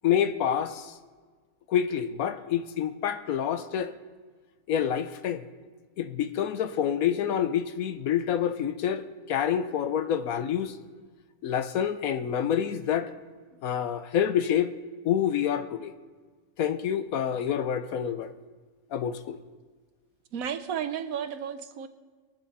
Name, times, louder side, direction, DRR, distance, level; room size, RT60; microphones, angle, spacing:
voice 1, 0.0-0.9 1.7-3.9 4.7-5.4 6.0-10.8 11.4-13.1 13.6-14.7 15.0-15.9 16.6-18.3 18.9-19.4, left 9 dB, 75° left, 11 dB, 1.2 m, -27 dB
voice 2, 20.3-21.9, right 8 dB, 75° right, 10 dB, 1.2 m, -33 dB
22.5 x 8.6 x 4.2 m, 1.4 s
omnidirectional pair, 1.5 m